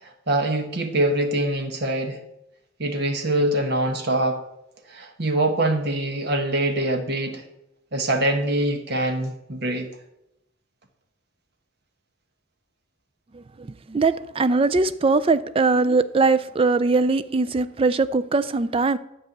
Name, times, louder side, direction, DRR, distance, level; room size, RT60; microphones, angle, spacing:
voice 1, 0.0-2.2 2.8-4.4 4.9-7.4 7.9-9.9, right 1 dB, 55° right, 1.3 m, -24 dB
voice 2, 13.3-19.0, right 3 dB, 30° right, 0.4 m, -21 dB
10.5 x 4.8 x 8.1 m
head